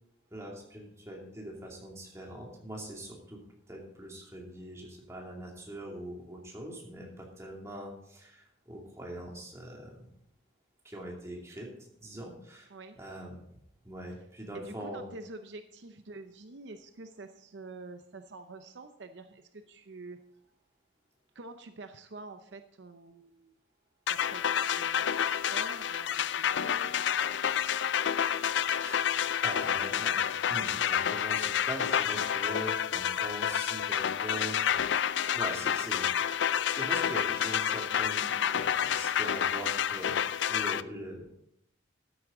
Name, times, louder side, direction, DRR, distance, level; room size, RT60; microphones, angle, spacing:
voice 1, 0.3-3.4 3.7-10.1 10.8-11.7 12.0-12.7 13.0-13.5 13.8-15.1 28.8-30.2 30.5-34.6 35.3-40.2 40.5-41.4, right 1 dB, 15° right, -2 dB, 2.6 m, -42 dB
voice 2, 14.5-20.2 21.3-23.5 24.1-27.5, right 3 dB, 65° right, 8 dB, 0.7 m, -47 dB
sound 1, 24.1-40.8, left 9 dB, 70° left, 0.4 m, -29 dB
13.0 x 9.5 x 3.8 m, 0.73 s
head